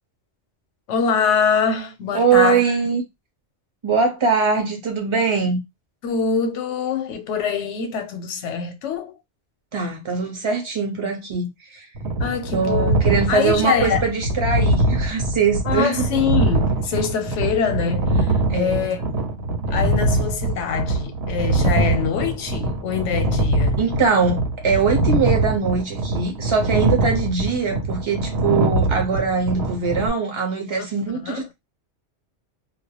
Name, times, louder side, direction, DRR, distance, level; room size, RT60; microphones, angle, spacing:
voice 1, 0.9-2.9 6.0-9.2 11.0-11.1 12.2-13.0 13.3-14.1 15.6-19.0 19.7-23.8 26.9-27.0 30.8-30.9 31.2-31.5, left 6 dB, 90° left, 0.9 m, -24 dB
voice 2, 2.1-3.0 3.8-5.6 9.7-11.9 12.5-16.0 18.5-18.9 23.8-31.5, right 5 dB, 30° right, 0.6 m, -22 dB
sound 1, 12.0-30.1, right 2 dB, 70° right, 0.9 m, -23 dB
2.2 x 2.0 x 2.8 m
omnidirectional pair, 1.2 m